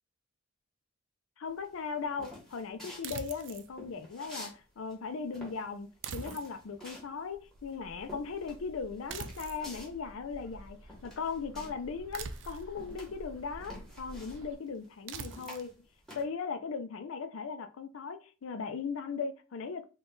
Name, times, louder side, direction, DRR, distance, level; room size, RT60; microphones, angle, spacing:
voice 1, 1.4-15.7 16.1-19.8, left 5 dB, 80° left, 0.4 m, -38 dB
sound 1, 1.6-4.6 4.8-11.9 12.2-16.2, left 1 dB, ahead, 1.2 m, -50 dB
sound 2, 3.0-3.7 6.0-6.8 9.1-9.7 12.1-12.8 15.1-15.7, right 6 dB, 60° right, 0.4 m, -42 dB
Bird, 7.3-14.6, equal, 85° right, 0.7 m, -50 dB
3.5 x 2.3 x 3.8 m
head